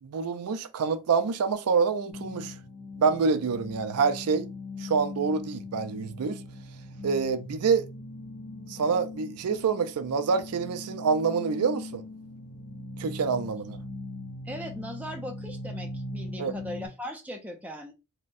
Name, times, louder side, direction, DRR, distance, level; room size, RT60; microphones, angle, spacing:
voice 1, 0.0-2.5 3.0-4.5 4.8-6.4 7.0-7.9 8.7-12.0 13.0-13.8 16.4-16.5, right 5 dB, 85° right, 0.4 m, -26 dB
sound 1, 2.1-16.9, left 2 dB, 60° left, 0.8 m, -40 dB
voice 2, 14.4-17.9, equal, 5° right, 0.4 m, -39 dB
3.7 x 2.1 x 2.6 m
head